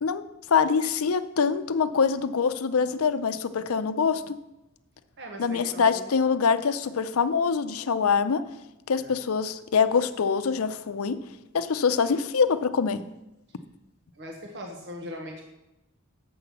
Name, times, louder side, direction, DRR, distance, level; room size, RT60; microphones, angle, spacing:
voice 1, 0.0-4.4 5.4-8.4 8.9-11.2 11.5-13.0, left 5 dB, 90° left, 12 dB, 0.6 m, -24 dB
voice 2, 5.2-6.1 9.0-9.2 14.1-15.4, equal, 55° right, 2 dB, 1.1 m, -40 dB
7.7 x 6.0 x 6.9 m, 0.93 s
head